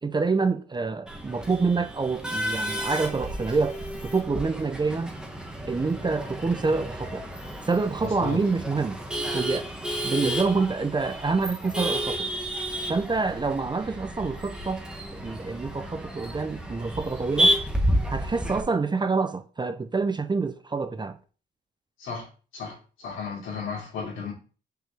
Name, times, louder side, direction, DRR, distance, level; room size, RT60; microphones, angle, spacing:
voice 1, 0.0-5.1 5.7-7.2 7.7-9.0 9.3-9.7 10.0-12.3 12.9-14.8 15.1-17.6 18.1-21.2, right 4 dB, 20° right, 0.7 m, -27 dB
Male speech man speaking / Laughter / Chatter, 1.1-18.6, equal, 5° right, 1.5 m, -31 dB
voice 2, 8.0-8.4 22.0-22.3 22.5-24.3, left 5 dB, 80° left, 3.2 m, -34 dB
6.2 x 5.3 x 3.3 m
cardioid pair, 90°, 20 cm